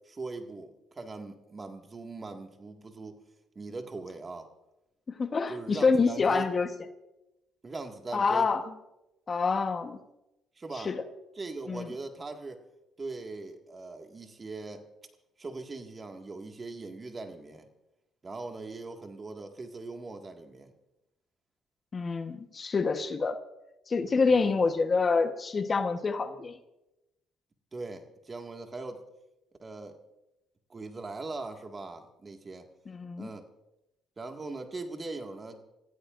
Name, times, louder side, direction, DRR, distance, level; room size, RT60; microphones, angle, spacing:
voice 1, 0.1-3.2 3.6-4.5 5.5-6.5 7.6-8.5 10.6-10.9 11.4-12.6 13.0-14.8 15.4-17.7 18.2-20.7 24.3-24.5 27.7-29.0 29.6-30.0 30.7-32.7 33.2-33.4 34.2-35.7, right 3 dB, 30° right, 4 dB, 1.9 m, -40 dB
voice 2, 5.1-6.7 8.1-8.6 9.3-10.0 10.8-11.0 11.7-11.9 21.9-23.4 23.9-26.6 32.9-33.3, left 4 dB, 40° left, 8 dB, 1.2 m, -27 dB
29.0 x 15.5 x 2.6 m, 0.94 s
supercardioid pair, 75°, 0 cm